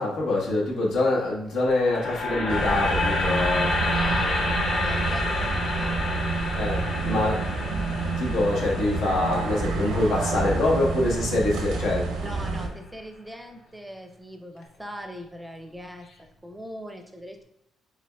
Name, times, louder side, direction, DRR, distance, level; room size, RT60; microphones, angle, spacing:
voice 1, 0.0-3.8 6.5-7.4 8.2-12.4, left 2 dB, 85° left, -3 dB, 1.2 m, -25 dB
sound 1, 1.7-11.8, left 2 dB, 55° left, 1.4 m, -30 dB
sound 2, 2.5-12.7, right 3 dB, 90° right, 0.7 m, -29 dB
voice 2, 3.9-6.2 6.8-7.4 12.2-17.4, equal, 5° right, 4 dB, 0.6 m, -40 dB
5.0 x 3.6 x 2.3 m, 0.82 s
cardioid pair, 90°, 0 cm